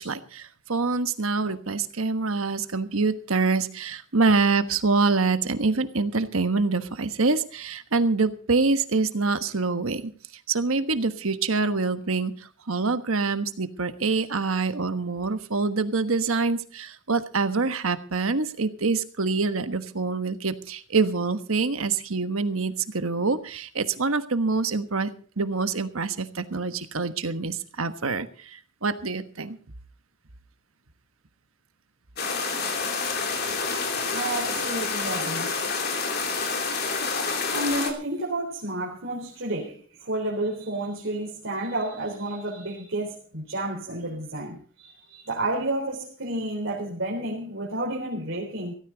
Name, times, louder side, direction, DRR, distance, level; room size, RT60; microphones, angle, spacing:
voice 1, 0.0-10.1 10.5-12.3 12.7-25.1 25.4-29.6, right 4 dB, 85° right, 1.4 m, -25 dB
sound 1, 32.2-37.9, left 4 dB, 45° left, 2.9 m, -28 dB
voice 2, 34.1-35.5 37.5-48.7, right 1 dB, 70° right, 3.7 m, -31 dB
17.0 x 15.0 x 4.0 m
head